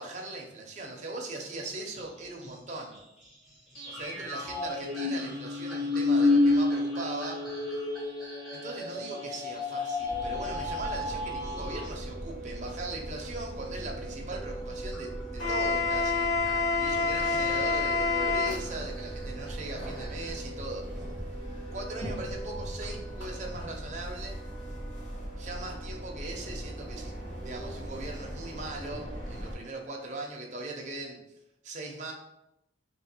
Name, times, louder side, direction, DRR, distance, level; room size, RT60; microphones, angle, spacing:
voice 1, 0.0-3.0 3.9-7.4 8.5-21.4 21.7-24.4 25.4-27.1 27.4-31.2 31.6-32.1, right 2 dB, 40° right, 0 dB, 0.8 m, -40 dB
sound 1, 1.9-14.3 14.9-20.5 21.0-21.1, equal, ahead, 0.8 m, -51 dB
sound 2, 3.8-11.9, left 2 dB, 30° left, 1.3 m, -29 dB
sound 3, 10.1-29.5, left 2 dB, 90° left, 1.4 m, -33 dB
3.2 x 3.1 x 4.4 m, 0.86 s
head